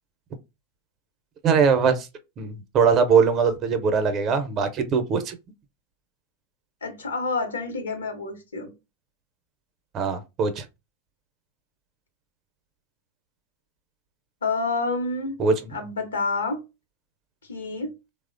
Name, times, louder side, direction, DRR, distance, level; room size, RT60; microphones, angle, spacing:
voice 1, 1.4-2.1 2.4-5.4 9.9-10.6 15.4-15.5, right 6 dB, 35° right, 0.5 m, -21 dB
voice 2, 6.8-8.7 14.4-15.4 15.7-16.6 17.5-17.9, left 3 dB, 85° left, 0.7 m, -28 dB
3.0 x 2.0 x 2.5 m
hypercardioid pair, 100°, 0 cm